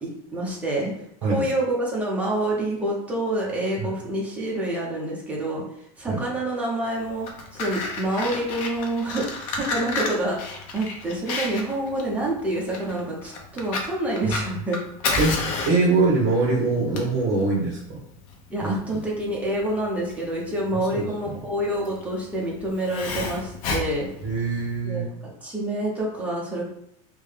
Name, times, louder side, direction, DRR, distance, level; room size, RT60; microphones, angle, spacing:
voice 1, 0.0-0.9 1.3-5.6 6.0-10.4 10.7-14.8 18.5-24.1 24.8-26.6, right 1 dB, 10° right, -4 dB, 0.7 m, -27 dB
Fire, 7.1-24.8, left 3 dB, 65° left, 0.8 m, -32 dB
voice 2, 15.2-18.0 18.6-18.7 20.9-21.3 24.2-25.1, right 3 dB, 40° right, -7 dB, 1.2 m, -23 dB
3.6 x 2.2 x 3.3 m, 0.77 s
supercardioid pair, 160°, 18 cm